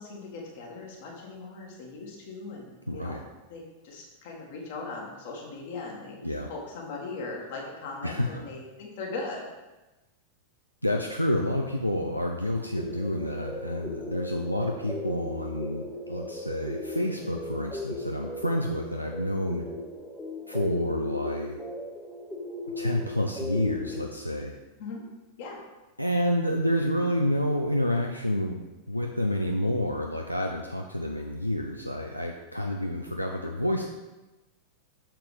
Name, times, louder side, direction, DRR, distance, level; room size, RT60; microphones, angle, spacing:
voice 1, 0.0-6.2 6.5-9.4 24.8-25.0 25.4-25.6, left 3 dB, 50° left, -1 dB, 2.0 m, -39 dB
voice 2, 2.9-3.2 6.2-6.5 8.0-8.4 10.8-19.6 20.5-21.6 22.8-24.6 26.0-33.8, left 1 dB, 90° left, 2 dB, 0.5 m, -29 dB
sound 1, 12.8-24.0, left 2 dB, 5° left, 1.0 m, -37 dB
6.7 x 5.9 x 5.1 m, 1.1 s
figure-of-eight pair, 90°, 0 cm